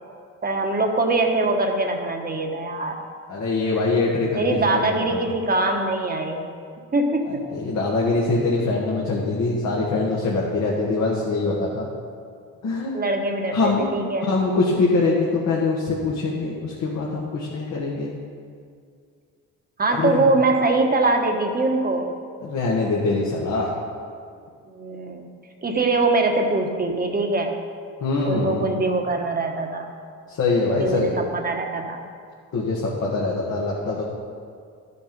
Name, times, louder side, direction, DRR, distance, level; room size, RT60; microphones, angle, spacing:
voice 1, 0.4-3.0 4.3-6.4 6.9-7.5 12.9-13.6 13.9-14.3 19.8-22.1 24.7-25.3 25.6-27.5 28.2-29.9 30.7-32.0, right 2 dB, 30° right, 3 dB, 1.3 m, -23 dB
voice 2, 3.3-5.2 7.2-11.9 12.6-13.0 13.5-13.9 14.3-18.1 19.9-20.3 22.4-23.7 28.0-28.6 30.3-31.2 32.5-34.0, left 3 dB, 65° left, -4 dB, 1.6 m, -23 dB
12.0 x 6.9 x 5.3 m, 2.2 s
cardioid pair, 90°, 30 cm